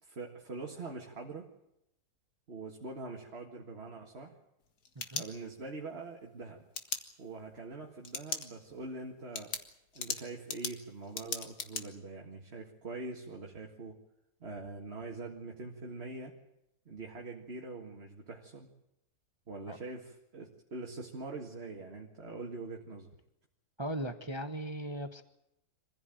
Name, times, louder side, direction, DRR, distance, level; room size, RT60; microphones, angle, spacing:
voice 1, 0.0-1.5 2.5-4.4 5.1-6.7 7.2-9.6 9.9-14.0 14.4-16.4 16.9-18.7 19.5-23.1, right 3 dB, 40° right, 1 dB, 2.0 m, -44 dB
sound 1, 4.6-5.8 6.7-7.0 8.0-8.5 8.8-8.9 9.3-11.8, left 5 dB, 75° left, 2.1 m, -38 dB
voice 2, 23.8-25.2, equal, 20° right, 8 dB, 1.0 m, -38 dB
25.0 x 15.5 x 9.1 m, 0.85 s
omnidirectional pair, 1.7 m